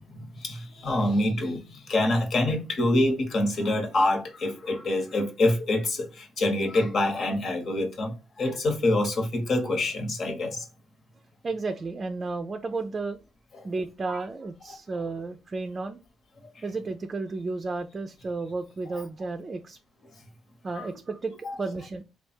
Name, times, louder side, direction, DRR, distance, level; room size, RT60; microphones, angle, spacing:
voice 1, 0.0-10.6 14.1-14.2 16.5-16.6 18.9-19.0 20.7-20.9 21.4-21.6, left 1 dB, 55° left, 1.3 m, -26 dB
voice 2, 11.4-13.2 13.6-16.0 16.6-19.8 20.6-22.0, right 3 dB, 35° right, 0.4 m, -33 dB
3.4 x 2.4 x 4.4 m
cardioid pair, 90°, 0 cm